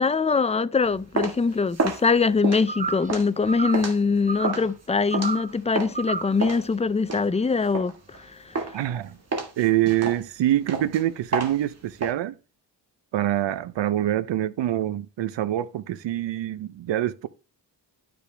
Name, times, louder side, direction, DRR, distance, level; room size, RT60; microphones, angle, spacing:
voice 1, 0.0-8.5, left 4 dB, 15° left, 0.4 m, -23 dB
sound 1, 0.8-6.0 6.4-8.2 8.5-8.9 9.3-12.1, right 3 dB, 35° right, 1.8 m, -30 dB
sound 2, 2.7-3.1 3.5-3.9 4.3-4.7 5.1-5.5 5.9-6.4, right 3 dB, 20° right, 0.8 m, -31 dB
voice 2, 8.7-9.2 9.6-12.4 13.1-17.3, right 13 dB, 80° right, 0.8 m, -25 dB
12.0 x 5.2 x 3.4 m
cardioid pair, 90°, 43 cm